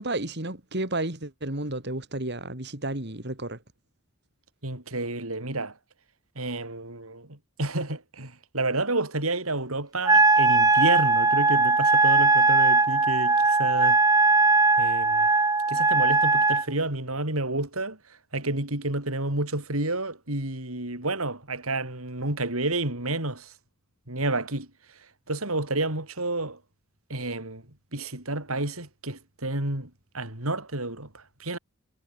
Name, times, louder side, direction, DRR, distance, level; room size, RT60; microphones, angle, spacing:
voice 1, 0.0-3.6, right 2 dB, 50° right, 3.4 m, -32 dB
voice 2, 4.6-5.7 6.4-14.0 14.8-15.3 15.7-18.0 18.3-23.5 24.1-24.7 25.3-26.6 27.1-27.6 27.9-31.6, right 2 dB, 85° right, 5.8 m, -30 dB
Wind instrument woodwind instrument, 10.0-16.6, right 3 dB, 15° right, 2.3 m, -20 dB
head